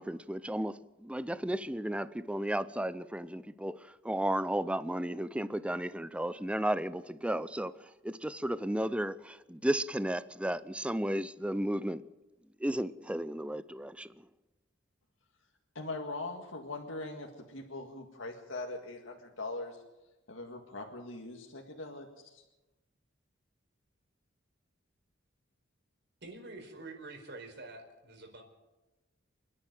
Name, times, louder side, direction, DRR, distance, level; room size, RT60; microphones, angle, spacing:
voice 1, 0.0-12.0 12.6-14.2, right 1 dB, 5° right, 0.6 m, -34 dB
voice 2, 15.8-19.8 20.3-22.4, left 2 dB, 90° left, 2.0 m, -41 dB
voice 3, 26.2-28.4, right 2 dB, 65° right, 4.6 m, -47 dB
27.5 x 10.5 x 9.2 m
head